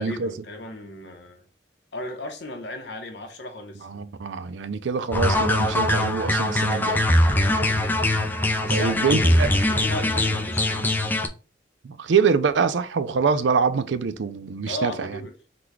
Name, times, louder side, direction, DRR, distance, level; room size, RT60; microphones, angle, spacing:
voice 1, 0.0-1.5 1.9-4.0 7.4-7.8 8.6-11.0 14.7-15.3, left 1 dB, 70° left, 0.9 m, -35 dB
voice 2, 3.8-7.1 8.7-9.5 11.8-15.2, right 5 dB, 80° right, 0.4 m, -24 dB
sound 1, 5.1-11.3, left 1 dB, 10° left, 0.4 m, -22 dB
3.9 x 2.3 x 4.6 m
head